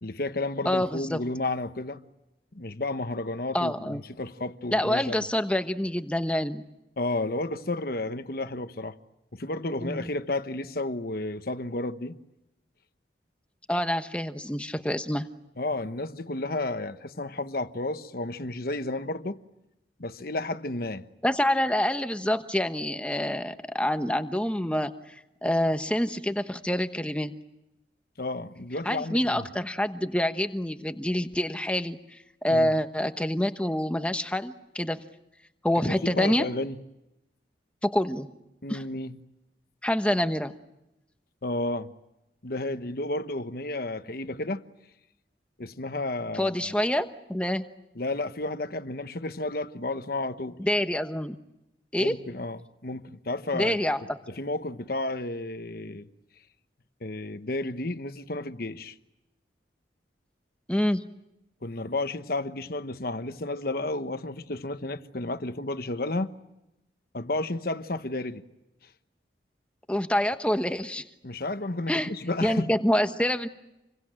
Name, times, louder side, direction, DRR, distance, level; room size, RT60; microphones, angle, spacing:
voice 1, 0.0-2.0 2.5-5.2 7.0-9.0 9.3-12.2 15.6-19.4 20.0-21.0 28.2-29.5 32.5-32.7 35.8-36.8 38.6-39.2 41.4-41.9 42.4-44.6 45.6-46.7 47.9-50.6 52.0-53.8 54.4-56.1 57.0-59.0 61.6-66.4 67.1-68.4 71.2-72.7, left 2 dB, 55° left, 1.1 m, -32 dB
voice 2, 0.6-1.2 3.5-4.0 4.7-6.6 9.8-10.1 13.7-15.3 21.2-27.3 28.8-32.2 32.4-35.0 35.6-36.4 37.8-38.3 38.7-38.8 39.8-40.5 46.3-47.6 50.6-51.3 51.9-52.2 53.5-54.2 60.7-61.0 69.9-71.0 71.9-72.1 72.4-73.5, left 1 dB, 5° left, 1.1 m, -27 dB
28.0 x 23.0 x 8.9 m
head